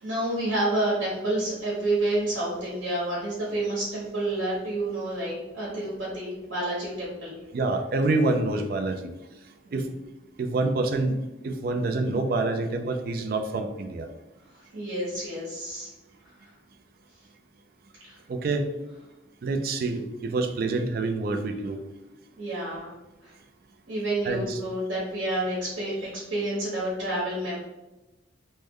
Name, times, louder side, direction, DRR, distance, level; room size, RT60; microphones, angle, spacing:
voice 1, 0.0-7.4 9.6-9.9 14.5-15.9 18.0-18.1 22.4-22.9 23.2-23.3 23.9-27.5, right 1 dB, 85° right, -7 dB, 1.0 m, -29 dB
voice 2, 7.5-9.1 9.7-9.9 10.4-11.2 11.4-14.1 18.3-18.7 19.4-21.8 24.2-24.6, right 2 dB, 50° right, 6 dB, 0.3 m, -27 dB
3.1 x 2.1 x 3.6 m, 1.0 s
head